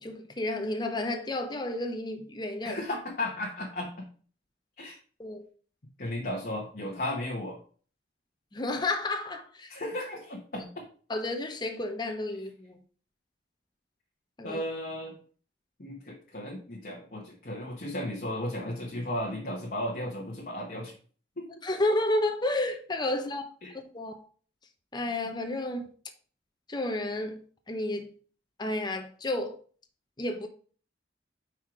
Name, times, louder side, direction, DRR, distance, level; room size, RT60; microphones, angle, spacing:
voice 1, 0.0-2.8 5.2-5.5 8.5-9.7 11.1-12.8 14.4-14.6 21.6-23.5 23.7-24.2 24.9-25.9 26.7-27.4 27.7-28.1 28.6-29.6 30.2-30.5, left 2 dB, 25° left, 0.8 m, -31 dB
voice 2, 2.6-4.1 4.8-5.0 6.0-7.6 9.7-10.8 14.4-15.2 15.8-20.9 21.4-21.5 23.6-23.7, left 1 dB, 50° left, 1.2 m, -35 dB
5.6 x 4.5 x 4.8 m
head